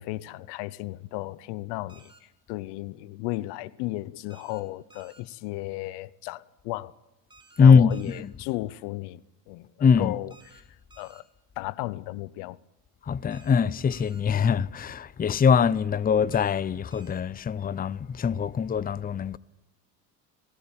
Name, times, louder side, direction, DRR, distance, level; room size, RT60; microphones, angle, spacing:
voice 1, 0.0-6.9 7.6-10.6 11.0-11.2 11.6-12.6, left 19 dB, 80° left, 0.8 m, -35 dB
sound 1, 1.9-2.2 4.3-4.6 4.9-5.2 7.3-7.6 7.9-8.2 10.3-10.6 10.9-11.2 13.3-13.6 13.9-14.2 16.3-16.6 16.9-17.2, right 3 dB, 10° right, 3.6 m, -55 dB
voice 2, 7.6-8.3 9.8-10.1 13.1-19.4, left 6 dB, 20° left, 0.6 m, -22 dB
18.0 x 18.0 x 8.7 m
supercardioid pair, 95°, 40 cm